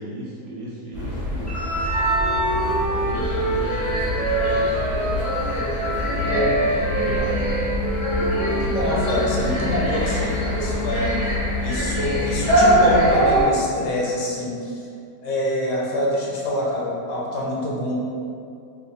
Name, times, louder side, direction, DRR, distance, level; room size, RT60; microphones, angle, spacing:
voice 1, 0.0-1.7 2.3-5.0 5.9-7.4, equal, 65° right, -6 dB, 0.8 m, -36 dB
sound 1, 0.9-13.4, equal, 10° left, 0.9 m, -24 dB
Wind instrument woodwind instrument, 1.6-10.0, right 2 dB, 35° right, 0.5 m, -27 dB
sound 2, 6.8-12.9, left 4 dB, 90° right, 1.3 m, -30 dB
voice 2, 8.4-11.2 11.6-14.8 15.2-17.9, left 1 dB, 65° left, -4 dB, 0.8 m, -25 dB
2.8 x 2.2 x 3.9 m, 2.4 s
omnidirectional pair, 1.8 m